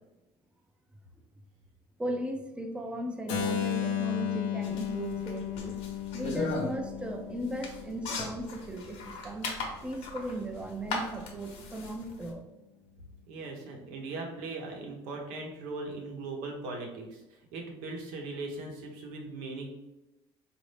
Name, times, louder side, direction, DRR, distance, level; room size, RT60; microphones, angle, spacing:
voice 1, 2.0-5.8 6.1-9.6 9.8-12.5, right 1 dB, 10° right, 4 dB, 0.4 m, -37 dB
Keyboard (musical), 3.3-9.1, left 11 dB, 80° left, 0.5 m, -35 dB
sound 1, 4.6-12.3, left 3 dB, 65° left, 0.9 m, -38 dB
voice 2, 13.3-17.2 17.5-19.7, right 3 dB, 85° right, 1 dB, 0.9 m, -39 dB
4.1 x 2.5 x 3.3 m, 0.99 s
cardioid pair, 120°, 12 cm